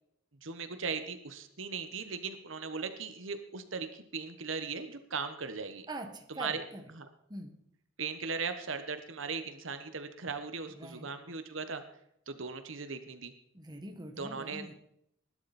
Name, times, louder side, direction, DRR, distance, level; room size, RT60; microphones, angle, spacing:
voice 1, 0.4-5.9 6.4-6.6 7.0-7.1 8.0-11.8 12.3-13.3 14.2-14.7, right 5 dB, 70° right, 9 dB, 1.3 m, -38 dB
voice 2, 5.9-6.9 7.3-7.6 10.7-11.1 13.5-14.7, right 1 dB, 20° right, 5 dB, 1.8 m, -43 dB
20.0 x 11.5 x 4.3 m, 0.74 s
head